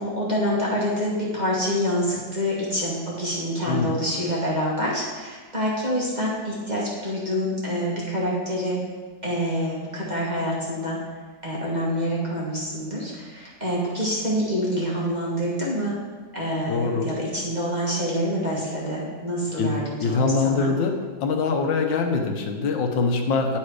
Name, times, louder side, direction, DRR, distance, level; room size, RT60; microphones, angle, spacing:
voice 1, 0.0-8.8 9.2-11.0 11.4-16.0 16.3-20.6, equal, 25° right, -6 dB, 1.4 m, -26 dB
voice 2, 16.7-17.1 19.6-21.0 21.2-23.6, left 4 dB, 80° left, 4 dB, 1.5 m, -23 dB
9.4 x 4.3 x 4.7 m, 1.4 s
omnidirectional pair, 2.1 m